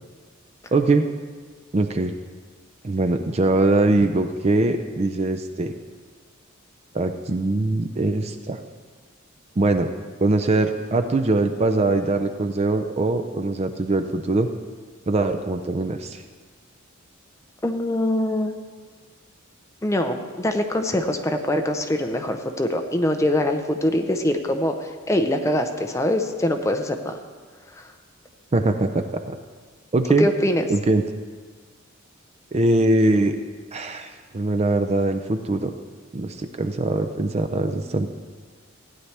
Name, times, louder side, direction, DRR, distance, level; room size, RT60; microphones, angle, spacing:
voice 1, 0.7-1.1 1.7-2.1 2.8-5.7 6.9-8.6 9.6-9.9 10.2-14.5 15.1-16.2 28.5-29.4 29.9-30.3 30.7-31.0 32.5-33.4 33.7-35.7 36.1-38.1, right 2 dB, 30° right, 8 dB, 0.4 m, -22 dB
voice 2, 17.6-18.6 19.8-27.2 27.8-27.9 30.2-30.6, left 1 dB, 15° left, 5 dB, 0.6 m, -23 dB
15.5 x 9.4 x 3.3 m, 1.5 s
head